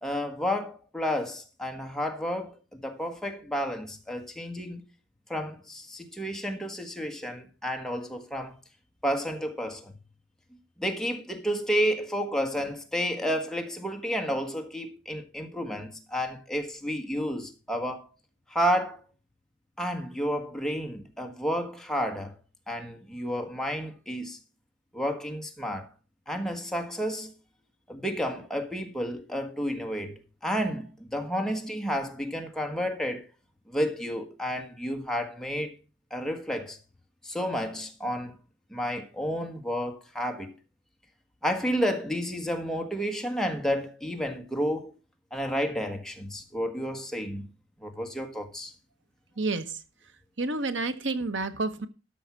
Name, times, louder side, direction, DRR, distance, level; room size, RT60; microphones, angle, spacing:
voice 1, 0.0-4.8 5.3-8.6 9.0-9.9 10.8-18.1 18.5-19.0 19.8-22.3 22.7-24.4 24.9-25.9 26.3-27.3 27.9-33.3 33.7-35.7 36.1-36.8 37.2-38.3 38.7-40.5 41.4-44.9 45.3-47.5 47.8-48.7, equal, 5° left, 1.5 m, -31 dB
voice 2, 49.4-49.8 50.4-51.9, right 3 dB, 75° right, 1.2 m, -29 dB
13.0 x 5.6 x 5.9 m
head